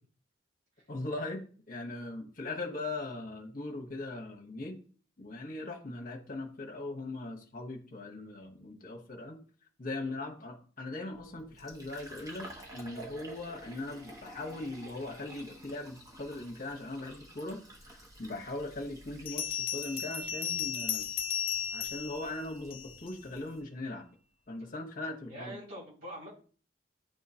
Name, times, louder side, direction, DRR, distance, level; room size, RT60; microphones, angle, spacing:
voice 1, 0.9-4.8 5.2-9.4 9.8-17.6 17.9-21.1 21.7-24.1 24.5-25.6, left 2 dB, 45° left, 1 dB, 1.0 m, -40 dB
Fill (with liquid), 11.1-23.6, right 1 dB, 20° right, 1.1 m, -51 dB
Bell, 19.3-23.1, left 8 dB, 30° left, 0.4 m, -35 dB
voice 2, 25.3-26.3, equal, 55° right, -5 dB, 3.0 m, -45 dB
10.0 x 3.7 x 2.8 m, 0.42 s
head